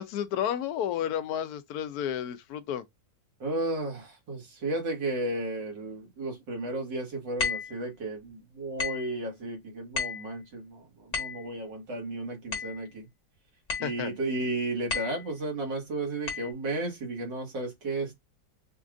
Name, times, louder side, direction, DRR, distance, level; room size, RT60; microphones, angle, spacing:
voice 1, 0.0-2.8 13.8-14.1, left 9 dB, 70° left, 1.0 m, -31 dB
voice 2, 3.4-13.1 13.8-18.1, right 2 dB, 70° right, 2.2 m, -33 dB
sound 1, 7.4-7.8 8.8-9.1 10.0-10.3 11.1-11.5 12.5-12.8 13.7-14.0 14.9-15.3 16.3-16.5, left 5 dB, 45° left, 1.6 m, -32 dB
5.2 x 2.4 x 2.4 m
omnidirectional pair, 2.0 m